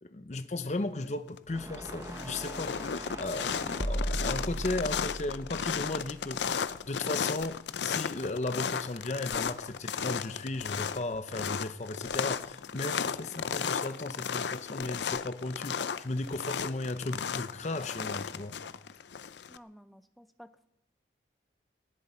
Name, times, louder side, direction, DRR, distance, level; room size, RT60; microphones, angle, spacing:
voice 1, 0.0-6.5 6.9-18.5, left 2 dB, 40° left, 0.7 m, -36 dB
sound 1, 1.0-1.4 1.7-19.6, left 7 dB, 80° left, 0.5 m, -35 dB
sound 2, 1.5-6.7, right 1 dB, 15° right, 0.9 m, -38 dB
voice 2, 19.5-20.7, equal, ahead, 0.5 m, -54 dB
18.5 x 17.0 x 4.4 m
head